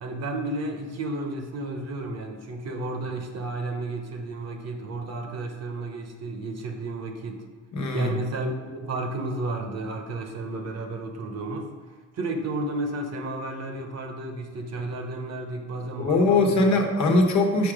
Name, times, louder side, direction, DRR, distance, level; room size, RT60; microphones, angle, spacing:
voice 1, 0.0-7.4 7.9-11.7 12.1-16.7, right 2 dB, 55° right, 5 dB, 1.1 m, -32 dB
voice 2, 7.7-8.2 16.0-17.7, left 2 dB, 65° left, 3 dB, 1.2 m, -21 dB
5.8 x 4.9 x 5.0 m, 1.3 s
cardioid pair, 90°, 30 cm